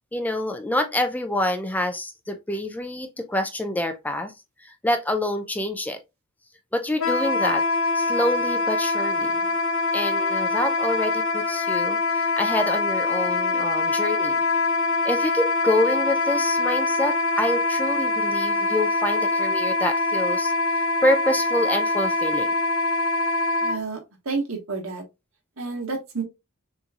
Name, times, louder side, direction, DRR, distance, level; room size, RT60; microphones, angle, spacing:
voice 1, 0.1-6.0 6.7-7.6 7.9-9.4 9.9-14.4 15.0-22.5, left 1 dB, 5° left, 0.4 m, -27 dB
Wind instrument woodwind instrument, 7.0-23.8, left 2 dB, 70° left, 1.0 m, -24 dB
voice 2, 23.6-25.0 25.6-26.2, right 4 dB, 65° right, 1.7 m, -30 dB
6.3 x 3.1 x 2.4 m
head